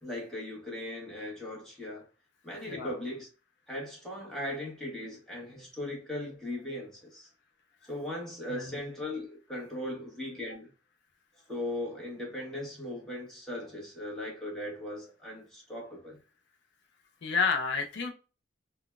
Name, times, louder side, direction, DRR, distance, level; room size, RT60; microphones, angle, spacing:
voice 1, 0.0-2.0 2.4-3.3 3.7-7.3 7.8-10.7 11.5-16.2, left 1 dB, ahead, 1.3 m, -38 dB
voice 2, 17.2-18.1, left 5 dB, 65° left, 0.5 m, -30 dB
3.8 x 2.2 x 2.3 m
head